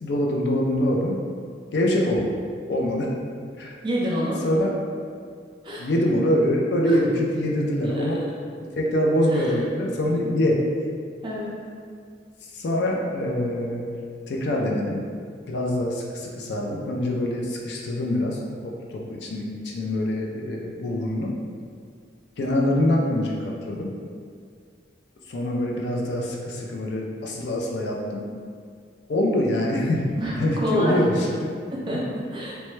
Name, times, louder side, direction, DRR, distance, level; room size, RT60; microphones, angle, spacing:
voice 1, 0.0-1.2 1.7-2.3 2.7-3.1 3.6-3.7 4.4-4.7 5.8-8.2 8.8-10.6 12.5-13.9 14.3-15.0 15.5-21.3 22.4-23.9 25.3-28.2 29.1-30.1 30.4-31.5 31.9-32.0, left 1 dB, 60° left, -2 dB, 0.4 m, -24 dB
voice 2, 3.8-4.4 5.6-5.9 6.9-7.0 7.8-8.1 9.3-9.5 11.2-11.6 30.2-31.0 31.7-32.5, equal, 25° right, -6 dB, 0.6 m, -28 dB
3.0 x 2.2 x 3.1 m, 2.1 s
head